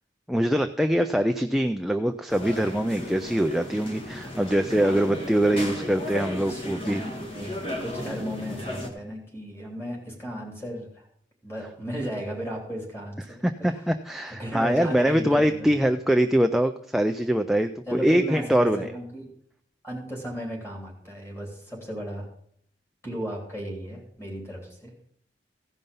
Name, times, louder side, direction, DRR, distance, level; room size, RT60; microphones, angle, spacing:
voice 1, 0.3-7.1 13.4-18.9, right 1 dB, ahead, 6 dB, 0.3 m, -23 dB
sound 1, 2.3-8.9, left 1 dB, 30° left, 1.6 m, -35 dB
voice 2, 7.3-11.1 11.4-13.8 14.4-15.7 17.9-19.2 19.8-22.3 23.0-24.9, equal, 15° left, -1 dB, 3.2 m, -35 dB
16.0 x 5.4 x 5.4 m, 0.67 s
head